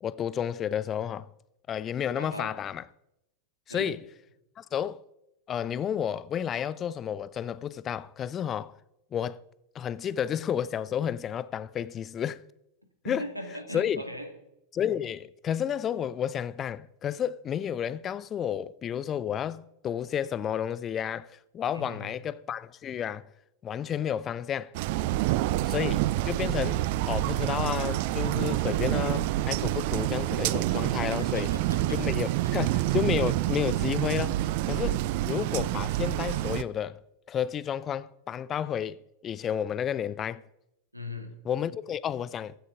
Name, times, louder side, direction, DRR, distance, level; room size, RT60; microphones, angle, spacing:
voice 1, 0.0-1.3 1.7-2.8 3.7-4.0 4.6-5.0 5.5-8.7 9.1-9.4 9.7-12.4 13.0-13.3 13.7-14.0 14.7-23.3 23.6-24.7 25.6-26.8 27.1-31.5 31.9-34.4 34.7-35.0 35.3-37.0 37.3-40.4 41.4-42.5, left 9 dB, 25° left, 0.4 m, -31 dB
voice 2, 2.2-2.5 3.7-3.9 13.0-14.3 21.7-22.2 31.2-32.0 32.4-32.6 40.9-41.3, left 1 dB, 90° right, 2.1 m, -39 dB
sound 1, 24.7-36.6, right 15 dB, 50° right, 0.4 m, -27 dB
15.5 x 12.0 x 3.7 m
figure-of-eight pair, 90°, 0 cm